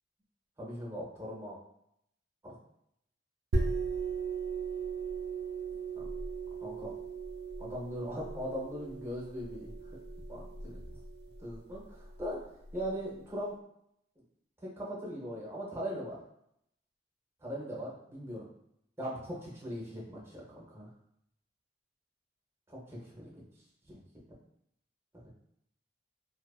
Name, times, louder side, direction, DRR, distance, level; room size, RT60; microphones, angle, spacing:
voice 1, 0.6-1.6 2.4-2.6 6.0-6.1 6.6-6.9 7.6-9.7 10.3-10.8 11.4-12.5 12.7-13.6 14.6-16.2 17.4-18.5 19.0-20.9 22.7-22.8 23.1-23.3 23.9-24.0 25.1-25.3, equal, 15° right, -5 dB, 0.7 m, -40 dB
sound 1, 3.5-12.9, right 4 dB, 65° right, 0.3 m, -37 dB
2.6 x 2.4 x 2.3 m, 0.75 s
head